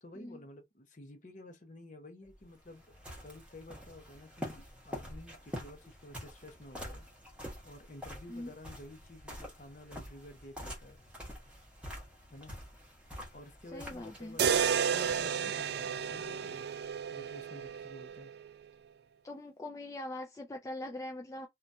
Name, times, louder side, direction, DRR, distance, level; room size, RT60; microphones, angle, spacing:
voice 1, 0.0-2.8 3.2-7.1 7.6-11.0 12.3-12.5 13.3-14.6 14.9-16.7 17.1-18.3, left 1 dB, 45° left, 0.8 m, -51 dB
sound 1, 2.3-15.2, equal, 5° right, 1.0 m, -47 dB
voice 2, 13.7-14.4 19.2-21.5, left 1 dB, 20° left, 0.3 m, -42 dB
sound 2, 14.4-18.5, right 7 dB, 60° right, 0.4 m, -32 dB
2.8 x 2.3 x 2.5 m
head